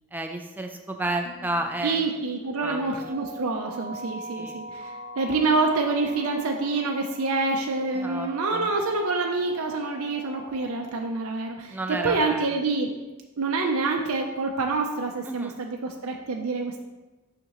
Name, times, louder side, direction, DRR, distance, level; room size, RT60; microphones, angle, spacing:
voice 1, 0.1-2.0 2.6-3.1 4.4-4.6 7.9-8.7 11.7-12.5 15.3-15.6, right 1 dB, 10° right, 3 dB, 0.4 m, -31 dB
sound 1, 1.2-10.9, equal, 65° left, 1.1 m, -42 dB
voice 2, 1.8-12.9 13.4-16.8, right 3 dB, 70° right, 2 dB, 0.5 m, -27 dB
6.4 x 5.9 x 3.0 m, 1.1 s
head